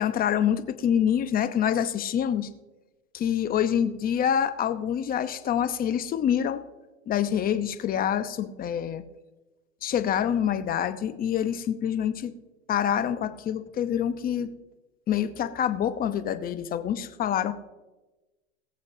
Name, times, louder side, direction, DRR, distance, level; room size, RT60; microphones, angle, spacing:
voice 1, 0.0-2.5 3.1-6.6 7.1-9.0 9.8-12.3 12.7-14.5 15.1-17.5, left 9 dB, 25° left, 10 dB, 0.8 m, -26 dB
22.0 x 7.3 x 2.7 m, 1.1 s
hypercardioid pair, 125°, 37 cm